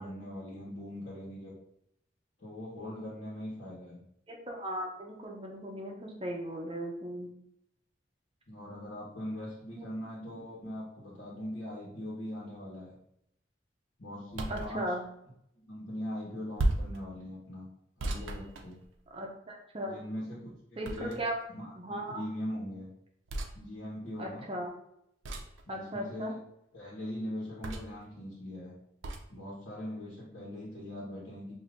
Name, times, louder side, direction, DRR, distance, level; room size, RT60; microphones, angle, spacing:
voice 1, 0.0-1.5 2.4-4.0 8.5-12.9 14.0-14.8 15.7-17.6 18.0-18.8 19.8-21.2 21.5-22.9 23.5-24.4 25.7-26.4 26.7-28.7 29.3-31.5, left 1 dB, 80° left, -7 dB, 1.3 m, -41 dB
voice 2, 4.3-7.3 14.5-15.0 19.1-20.0 20.8-21.4 21.8-22.2 24.2-24.7 25.7-26.3, right 1 dB, 30° right, 0 dB, 0.6 m, -37 dB
sound 1, 14.3-14.7 16.6-17.0 18.0-19.2 20.8-21.4 23.3-23.5 25.2-25.6 27.6-28.0 29.0-29.3, right 1 dB, 85° right, 0.5 m, -34 dB
5.0 x 2.7 x 2.5 m, 0.78 s
head